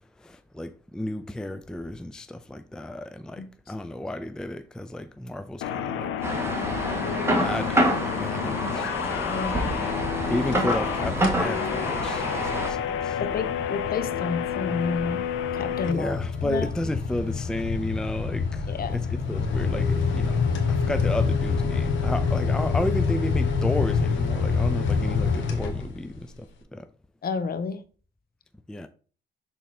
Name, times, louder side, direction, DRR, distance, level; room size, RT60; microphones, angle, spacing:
voice 1, 0.2-6.1 7.4-8.9 9.7-9.9 10.3-13.2 15.8-26.9 28.7-28.9, left 1 dB, 5° left, 0.4 m, -33 dB
sound 1, 5.6-15.9, left 9 dB, 90° left, 0.7 m, -30 dB
sound 2, 6.2-12.7, right 1 dB, 10° right, 1.8 m, -27 dB
voice 2, 9.3-9.8 13.2-15.2 15.5-16.1 16.4-16.7 18.7-19.0 27.2-27.8, left 5 dB, 50° left, 0.9 m, -30 dB
sound 3, 10.4-10.9 11.2-11.5 12.0-26.2, left 5 dB, 70° left, 1.4 m, -27 dB
6.3 x 3.9 x 4.3 m
cardioid pair, 90°, 20 cm